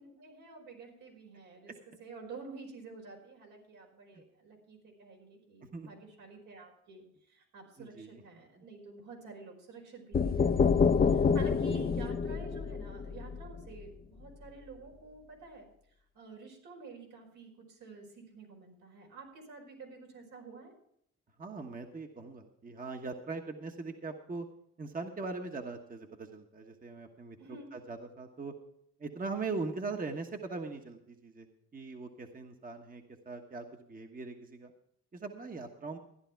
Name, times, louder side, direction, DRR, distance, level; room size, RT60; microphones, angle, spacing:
voice 1, 0.0-1.7 2.0-10.7 11.0-15.7 16.1-20.7 27.4-27.7, right 3 dB, 85° right, 0 dB, 5.1 m, -49 dB
voice 2, 7.8-8.2 8.6-8.7 21.4-24.5 24.8-28.5 29.0-34.7 35.1-36.0, right 3 dB, 30° right, 4 dB, 1.3 m, -41 dB
sound 1, 10.1-13.9, left 5 dB, 30° left, 0.7 m, -27 dB
14.0 x 10.5 x 4.6 m, 0.70 s
cardioid pair, 90°, 30 cm